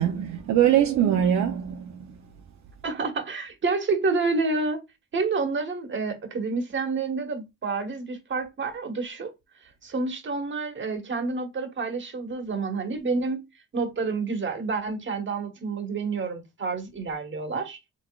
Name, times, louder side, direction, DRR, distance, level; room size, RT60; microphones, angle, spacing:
voice 1, 0.0-2.1, right 10 dB, 65° right, 0.6 m, -22 dB
voice 2, 2.8-4.8 5.1-9.3 9.8-13.4 13.7-17.9, right 4 dB, 40° right, 1.3 m, -29 dB
4.0 x 3.4 x 2.3 m
cardioid pair, 90°, 30 cm